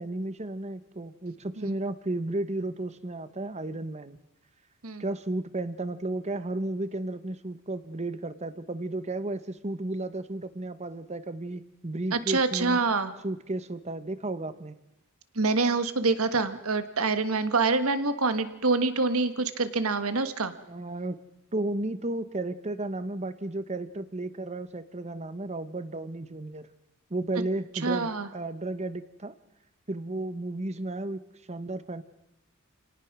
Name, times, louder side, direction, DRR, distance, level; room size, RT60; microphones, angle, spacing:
voice 1, 0.0-4.2 5.0-12.8 13.2-14.8 20.7-21.2 21.5-26.7 27.1-29.3 29.9-31.2 31.5-32.0, right 2 dB, 30° right, 13 dB, 1.0 m, -33 dB
voice 2, 12.1-13.2 15.3-20.5 27.8-28.3, right 3 dB, 70° right, 11 dB, 1.5 m, -26 dB
28.5 x 18.0 x 6.1 m, 0.86 s
head